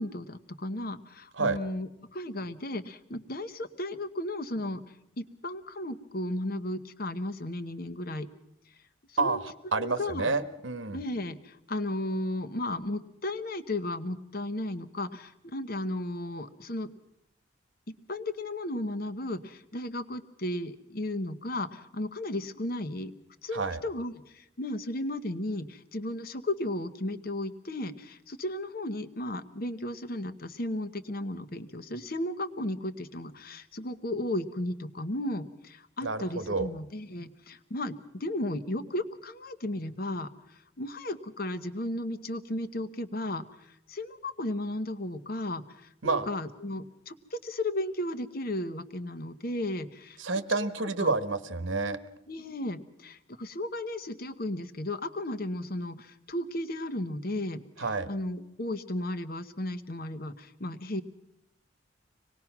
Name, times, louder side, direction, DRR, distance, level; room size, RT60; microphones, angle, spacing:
voice 1, 0.0-4.8 5.2-8.3 9.1-9.4 9.8-10.3 10.9-16.9 17.9-23.1 23.4-50.2 50.5-51.1 52.3-57.6 58.1-61.0, left 1 dB, 50° left, 11 dB, 1.1 m, -35 dB
voice 2, 9.7-11.0 23.5-23.8 36.0-36.7 46.0-46.3 50.2-52.0 57.8-58.1, right 3 dB, 85° right, 13 dB, 1.2 m, -29 dB
25.0 x 19.0 x 6.0 m, 0.84 s
head